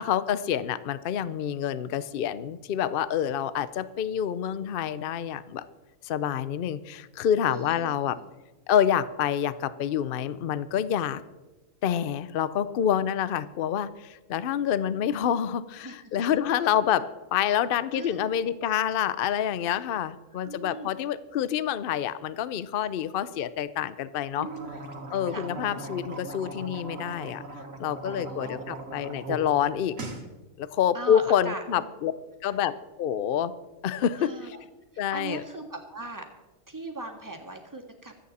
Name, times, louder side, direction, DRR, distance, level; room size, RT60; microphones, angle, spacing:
voice 1, 0.0-5.7 6.0-8.2 8.7-11.2 11.8-24.5 25.1-27.4 27.8-30.0 30.6-32.1 32.4-32.7 33.0-33.5 33.8-34.3 35.0-35.4, left 9 dB, 55° left, 15 dB, 0.6 m, -27 dB
voice 2, 7.5-8.3 15.8-16.3 17.9-18.3 20.4-20.9 24.3-24.7 25.3-25.4 28.0-28.6 30.9-31.9 32.5-32.6 34.1-34.6 35.1-36.3 36.7-38.2, right 2 dB, 15° right, 2 dB, 1.8 m, -39 dB
sound 1, 24.3-29.4 29.7-30.2, right 3 dB, 80° right, 2.1 m, -39 dB
24.5 x 8.6 x 4.2 m, 1.1 s
omnidirectional pair, 1.4 m